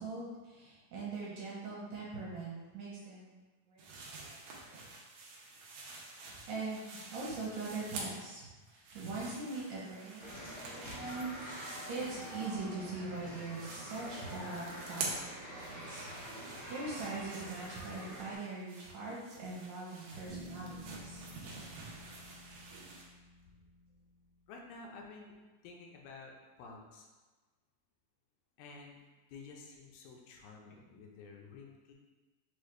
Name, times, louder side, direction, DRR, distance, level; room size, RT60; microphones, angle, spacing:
voice 1, 0.0-3.3 3.7-4.9 6.2-6.8 7.1-16.1 16.7-21.2, right 3 dB, 75° right, -6 dB, 2.3 m, -42 dB
sound 1, 3.8-8.4 8.7-12.9 13.1-23.0, right 3 dB, 90° right, 1.5 m, -48 dB
sound 2, 10.2-18.3, equal, 50° left, 0.8 m, -46 dB
sound 3, 20.3-24.2, equal, 60° right, 1.1 m, -52 dB
voice 2, 24.5-25.4 25.6-27.1 28.6-29.0 29.3-31.9, left 4 dB, 85° left, 0 dB, 2.4 m, -51 dB
6.2 x 2.4 x 3.2 m, 1.2 s
omnidirectional pair, 4.1 m